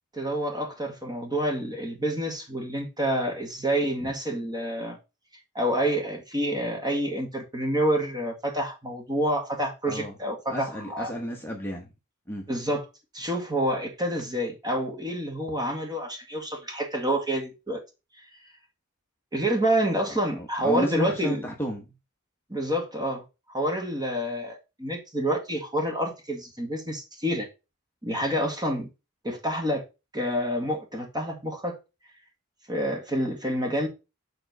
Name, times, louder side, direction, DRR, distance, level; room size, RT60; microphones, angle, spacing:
voice 1, 0.1-5.0 5.6-11.1 12.5-12.9 13.1-17.8 19.3-21.4 22.5-23.2 23.5-27.5 28.0-28.9 29.2-29.8 30.1-31.8 32.7-33.9, equal, 20° right, 2.0 m, -28 dB
voice 2, 10.5-11.9 12.3-12.5 20.4-21.9, right 1 dB, 10° left, 1.1 m, -32 dB
7.0 x 3.9 x 5.3 m
head